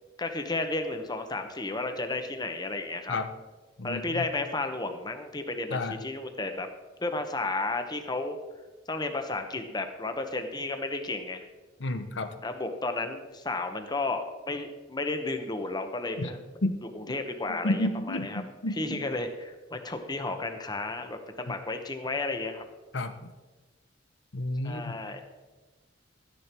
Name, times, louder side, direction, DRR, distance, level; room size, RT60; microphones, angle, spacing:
voice 1, 0.2-3.2 3.8-6.7 7.0-8.4 8.9-11.5 12.4-16.4 16.9-22.6 24.6-25.2, left 2 dB, 20° left, 6 dB, 1.1 m, -33 dB
voice 2, 3.8-4.2 5.7-5.9 11.8-12.3 16.2-16.3 16.6-16.8 17.6-19.0 22.9-23.3 24.3-25.0, left 1 dB, 70° left, 9 dB, 1.0 m, -31 dB
13.5 x 10.0 x 4.5 m, 1.2 s
head